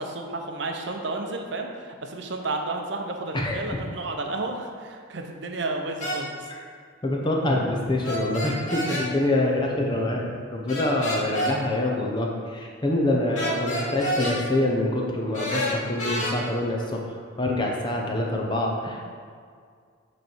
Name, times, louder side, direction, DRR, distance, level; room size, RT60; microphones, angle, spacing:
voice 1, 0.0-6.5 13.5-14.1, right 2 dB, 60° right, 3 dB, 0.6 m, -32 dB
voice 2, 3.3-3.8 7.0-19.1, left 1 dB, 25° left, -1 dB, 0.7 m, -26 dB
sound 1, 6.0-6.2 8.0-9.0 10.7-11.5 13.3-14.4 15.3-16.3, equal, 40° left, 1.6 m, -28 dB
7.9 x 3.2 x 4.4 m, 2.1 s
head